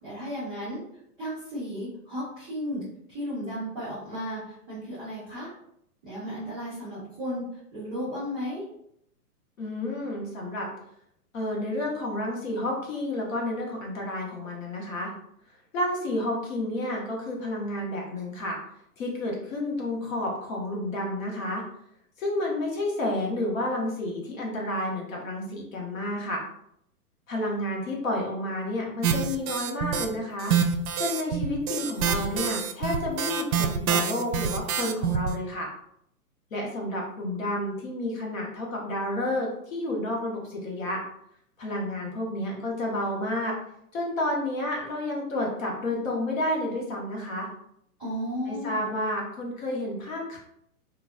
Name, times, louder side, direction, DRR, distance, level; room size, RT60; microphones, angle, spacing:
voice 1, 0.0-0.8 1.2-2.8 3.1-5.5 6.0-7.4 7.7-8.6 48.0-48.9, equal, 5° left, -20 dB, 0.5 m, -34 dB
voice 2, 9.6-10.7 11.3-15.1 15.7-18.6 19.0-21.6 22.2-26.4 27.3-30.5 31.0-35.7 36.5-41.0 41.6-43.5 43.9-47.5 48.5-50.4, left 1 dB, 55° left, -2 dB, 1.2 m, -30 dB
sound 1, 29.0-30.1 30.4-35.3, right 7 dB, 70° right, 0.5 m, -26 dB
3.9 x 2.4 x 2.3 m, 0.73 s
hypercardioid pair, 175°, 46 cm